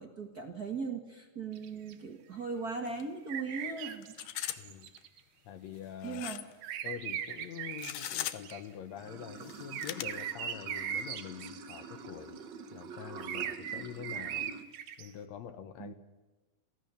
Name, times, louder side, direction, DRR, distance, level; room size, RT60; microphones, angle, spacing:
voice 1, 0.0-4.1 6.0-6.4 15.8-15.9, right 4 dB, 40° right, 4 dB, 1.5 m, -38 dB
sound 1, 1.5-1.9 3.3-5.2 6.6-8.6 9.7-11.8 13.2-15.1, right 9 dB, 75° right, 2.6 m, -39 dB
sound 2, 2.9-3.0 3.3-3.4 4.0-4.6 5.0-5.1 6.0-6.5 7.7-8.5 9.4-10.0, left 13 dB, 85° left, 2.4 m, -38 dB
voice 2, 4.6-4.9 5.5-6.3 6.8-12.4 12.7-14.5 15.0-15.9, left 9 dB, 70° left, 11 dB, 2.0 m, -45 dB
Water / Sink (filling or washing), 9.0-14.6, right 5 dB, 60° right, 1.2 m, -47 dB
23.5 x 16.5 x 6.9 m, 1.2 s
omnidirectional pair, 3.6 m